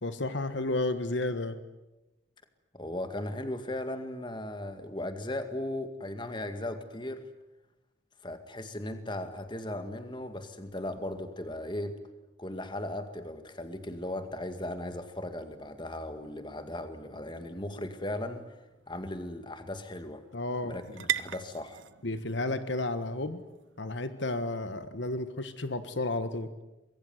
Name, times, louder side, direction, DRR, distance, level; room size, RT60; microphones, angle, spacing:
voice 1, 0.0-1.5 20.3-20.8 22.0-23.4 23.8-26.5, left 2 dB, 65° left, 11 dB, 1.4 m, -32 dB
voice 2, 2.7-7.2 8.2-12.0 12.4-18.5 18.9-20.2 20.6-21.8, left 1 dB, 25° left, 8 dB, 2.1 m, -37 dB
sound 1, 17.5-25.3, right 10 dB, 80° right, 0.8 m, -42 dB
25.0 x 22.0 x 9.6 m, 1.0 s
head